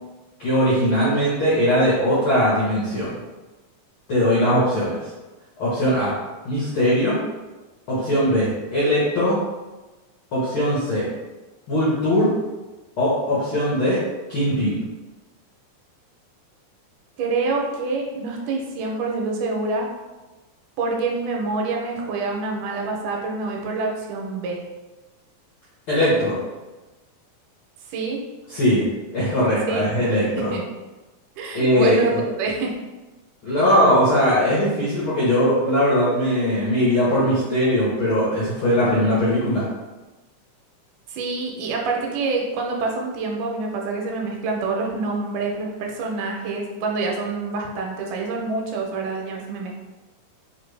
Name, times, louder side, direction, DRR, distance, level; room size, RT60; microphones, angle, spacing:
voice 1, 0.4-3.1 4.1-5.0 5.6-6.1 6.4-7.1 7.9-9.4 10.3-11.1 11.7-12.3 13.0-14.0 14.3-14.8 25.9-26.4 28.5-30.5 31.5-32.2 33.4-39.6, equal, 70° left, -9 dB, 1.2 m, -20 dB
voice 2, 17.2-19.9 20.8-24.6 27.9-28.2 29.7-30.0 30.5-30.6 31.4-32.7 41.1-49.7, right 3 dB, 80° right, 0 dB, 2.2 m, -26 dB
5.0 x 2.6 x 3.2 m, 1.1 s
omnidirectional pair, 3.8 m